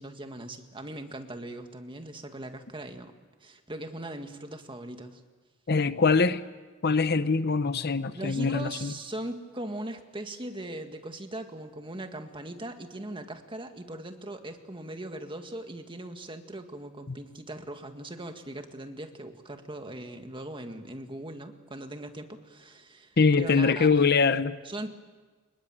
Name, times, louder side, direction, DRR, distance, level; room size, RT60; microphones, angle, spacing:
voice 1, 0.0-3.1 3.4-5.2 8.1-24.0 24.6-24.9, right 1 dB, 25° right, 1.9 m, -40 dB
voice 2, 5.7-6.4 6.8-8.9 17.1-17.2 23.2-24.6, left 4 dB, 50° left, 0.8 m, -23 dB
26.0 x 21.5 x 9.2 m
head